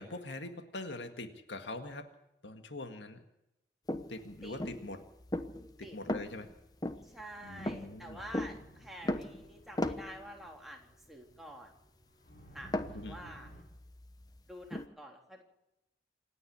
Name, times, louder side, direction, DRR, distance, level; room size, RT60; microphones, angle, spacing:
voice 1, 0.0-2.1 2.4-3.2 4.1-5.0 5.8-6.5 7.4-8.2 12.9-13.2, left 2 dB, 90° left, 7 dB, 1.9 m, -43 dB
sound 1, 3.9-10.4 12.6-14.9, left 1 dB, 20° left, 1.1 m, -38 dB
voice 2, 7.0-11.7 12.5-13.5 14.5-15.4, equal, ahead, 0 dB, 3.5 m, -48 dB
sound 2, 7.3-13.6, equal, 50° left, 6.8 m, -56 dB
27.0 x 9.7 x 9.9 m, 0.87 s
head